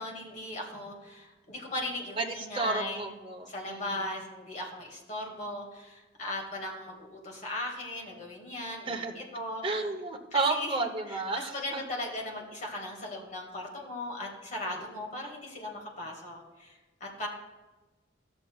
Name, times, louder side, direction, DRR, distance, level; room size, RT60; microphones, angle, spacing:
voice 1, 0.0-3.1 3.5-9.6 10.3-17.3, left 1 dB, 40° left, -1 dB, 1.9 m, -38 dB
voice 2, 2.2-4.1 8.9-9.1 9.6-11.8, right 3 dB, 30° right, 2 dB, 0.8 m, -32 dB
13.5 x 7.0 x 2.3 m, 1.2 s
head